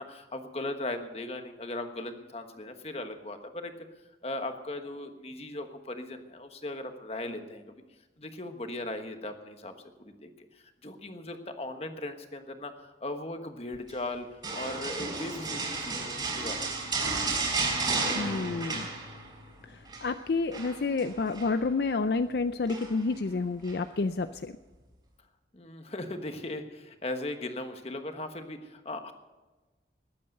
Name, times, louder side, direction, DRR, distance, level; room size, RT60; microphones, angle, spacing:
voice 1, 0.0-3.7 4.2-7.8 8.2-9.7 10.0-16.8 25.5-29.1, left 2 dB, 35° left, 6 dB, 1.3 m, -38 dB
sound 1, 14.4-19.4 19.7-20.1 20.5-21.5 22.7-23.1 23.6-23.8, right 3 dB, 25° right, 4.3 m, -32 dB
voice 2, 18.2-18.9 20.0-24.5, left 3 dB, 60° left, 10 dB, 0.5 m, -29 dB
20.0 x 8.7 x 6.6 m, 1.2 s
head